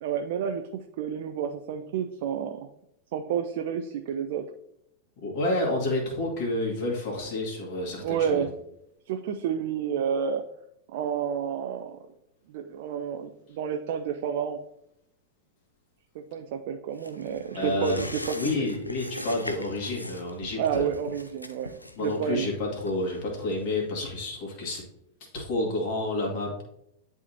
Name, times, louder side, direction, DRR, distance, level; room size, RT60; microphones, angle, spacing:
voice 1, 0.0-2.7 3.1-4.5 8.0-8.5 9.1-10.4 10.9-12.0 12.5-14.6 16.1-18.7 20.6-22.5, right 8 dB, 50° right, 6 dB, 0.4 m, -30 dB
voice 2, 5.2-8.4 17.5-18.1 18.3-20.9 22.0-24.8 25.3-26.6, left 2 dB, 45° left, -2 dB, 2.0 m, -29 dB
sound 1, 17.0-24.0 24.4-24.5, left 1 dB, 85° left, 0.5 m, -40 dB
10.5 x 3.5 x 2.8 m, 0.78 s
figure-of-eight pair, 90°, 0 cm